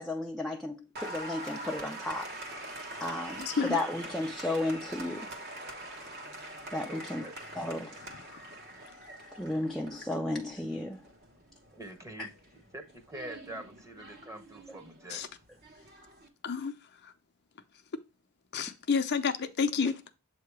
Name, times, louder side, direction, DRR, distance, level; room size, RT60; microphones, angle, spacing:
voice 1, 0.0-2.3 3.0-5.3 6.7-7.3 7.5-8.0 9.4-11.0 12.2-12.3 14.7-14.8, left 1 dB, ahead, 0.4 m, -34 dB
Applause, 0.9-16.3, right 1 dB, 50° right, 1.1 m, -44 dB
voice 2, 3.4-3.8 8.4-8.5 15.1-15.3 16.4-16.7 18.5-20.1, left 5 dB, 50° left, 0.5 m, -30 dB
voice 3, 6.9-7.3 11.7-12.3 12.7-15.2, right 1 dB, 15° right, 0.9 m, -45 dB
7.4 x 2.8 x 4.7 m
head